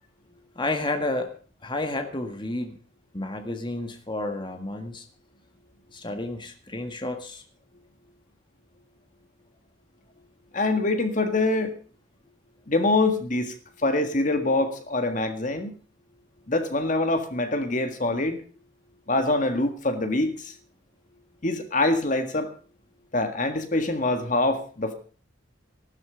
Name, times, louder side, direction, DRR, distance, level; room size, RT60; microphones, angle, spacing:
voice 1, 0.6-1.3 1.6-2.8 3.1-5.1 5.9-7.4, left 2 dB, 25° left, 6 dB, 1.7 m, -31 dB
voice 2, 10.5-11.7 12.7-13.5 13.8-15.7 16.5-18.4 19.1-20.5 21.4-22.5 23.1-24.9, left 2 dB, 40° left, 8 dB, 1.7 m, -24 dB
15.5 x 12.5 x 5.0 m, 0.41 s
head